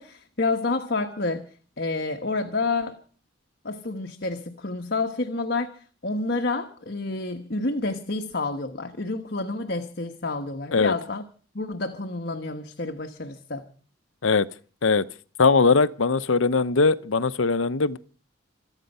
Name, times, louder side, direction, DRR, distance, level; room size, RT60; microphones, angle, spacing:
voice 1, 0.0-1.4 1.8-3.0 3.6-11.2 11.5-13.7, left 3 dB, 50° left, 1.2 m, -29 dB
voice 2, 15.4-18.0, left 4 dB, 75° left, 0.8 m, -20 dB
26.5 x 9.1 x 5.5 m
head